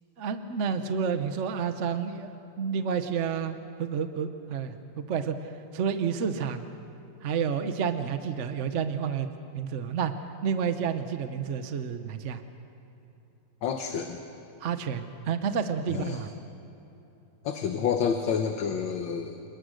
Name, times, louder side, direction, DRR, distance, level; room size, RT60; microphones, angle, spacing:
voice 1, 0.2-2.3 2.6-6.6 7.2-9.3 9.5-10.1 10.4-12.4 14.6-16.3, right 7 dB, 55° right, 9 dB, 0.8 m, -30 dB
voice 2, 13.6-14.2 15.9-16.2 17.4-19.4, left 7 dB, 70° left, 5 dB, 1.7 m, -29 dB
28.0 x 20.5 x 6.5 m, 3.0 s
omnidirectional pair, 2.3 m